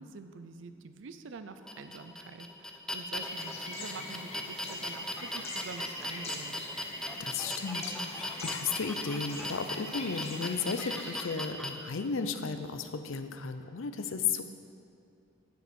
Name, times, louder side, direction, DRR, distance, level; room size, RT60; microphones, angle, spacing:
voice 1, 0.0-6.7, right 4 dB, 65° right, 9 dB, 0.5 m, -46 dB
sound 1, 1.7-11.7, left 1 dB, 5° left, 0.4 m, -38 dB
sound 2, 3.2-11.1, left 2 dB, 30° left, 1.1 m, -43 dB
voice 2, 7.2-14.5, left 5 dB, 70° left, 9 dB, 0.6 m, -34 dB
7.9 x 6.5 x 6.9 m, 2.4 s
head